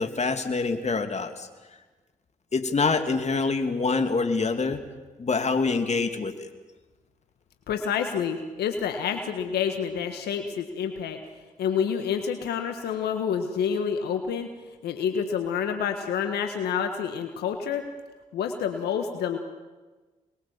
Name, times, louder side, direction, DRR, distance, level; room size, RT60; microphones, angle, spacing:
voice 1, 0.0-1.5 2.5-4.8 5.2-6.5, left 4 dB, 45° left, 7 dB, 2.7 m, -25 dB
voice 2, 7.7-11.2 11.6-14.5 14.8-17.8 18.3-19.4, left 7 dB, 80° left, 6 dB, 1.6 m, -28 dB
27.5 x 21.5 x 7.4 m, 1.2 s
supercardioid pair, 45°, 17 cm